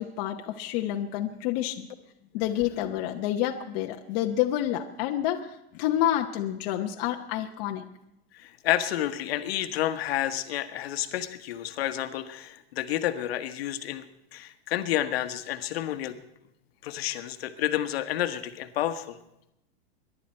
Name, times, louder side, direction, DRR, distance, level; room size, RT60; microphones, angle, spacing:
voice 1, 0.0-1.9 2.3-5.5 5.7-7.8, left 12 dB, 40° left, 3 dB, 1.0 m, -28 dB
voice 2, 8.3-14.0 14.3-16.2 16.8-19.2, left 12 dB, 65° left, 9 dB, 1.3 m, -30 dB
22.5 x 11.0 x 4.4 m, 0.86 s
supercardioid pair, 160°, 33 cm